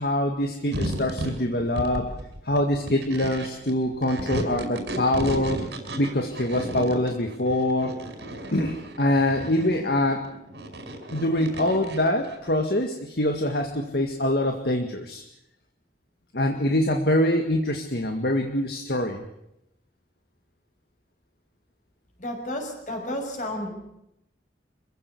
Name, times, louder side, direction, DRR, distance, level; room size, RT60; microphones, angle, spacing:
voice 1, 0.0-2.1 2.4-5.6 6.0-7.9 8.5-10.2 11.1-15.2 16.3-19.3, left 1 dB, 60° left, 4 dB, 2.0 m, -24 dB
sound 1, 0.7-12.5, right 1 dB, 75° right, 5.3 m, -34 dB
voice 2, 22.2-23.7, left 1 dB, 45° left, 3 dB, 6.3 m, -32 dB
26.5 x 16.0 x 8.6 m, 0.82 s
head